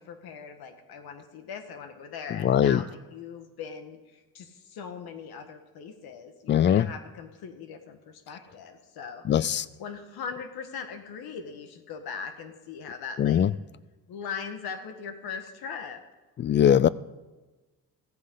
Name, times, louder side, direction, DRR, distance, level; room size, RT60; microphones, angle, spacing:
voice 1, 0.0-9.5 9.8-13.4 14.1-16.0, left 6 dB, 80° left, 1.7 m, -40 dB
voice 2, 2.3-2.8 6.5-6.9 9.3-9.7 13.2-13.5 16.4-16.9, left 10 dB, 30° left, 0.4 m, -21 dB
15.5 x 15.0 x 3.9 m
cardioid pair, 140°, 37 cm